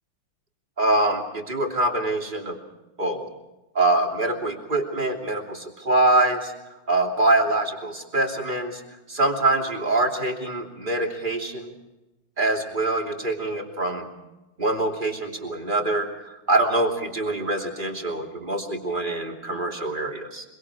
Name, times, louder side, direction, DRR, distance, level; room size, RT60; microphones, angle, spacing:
voice 1, 0.8-2.6 3.0-3.3 3.7-6.5 6.9-8.8 9.1-11.7 12.4-14.1 14.6-20.4, right 2 dB, 20° right, 1 dB, 3.0 m, -24 dB
25.0 x 23.5 x 4.9 m, 1.0 s
omnidirectional pair, 2.3 m